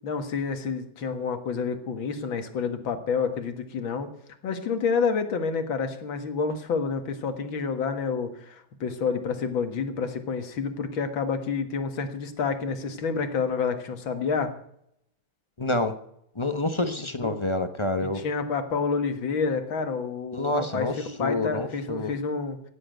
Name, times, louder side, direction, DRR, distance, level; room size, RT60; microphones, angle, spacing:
voice 1, 0.0-4.1 4.4-14.5 17.2-17.3 18.1-20.9 21.2-22.7, left 5 dB, 85° left, 8 dB, 2.5 m, -29 dB
voice 2, 15.6-15.9 16.4-18.2 20.3-22.1, left 2 dB, 20° left, 9 dB, 0.9 m, -28 dB
16.5 x 7.7 x 9.2 m, 0.73 s
omnidirectional pair, 2.1 m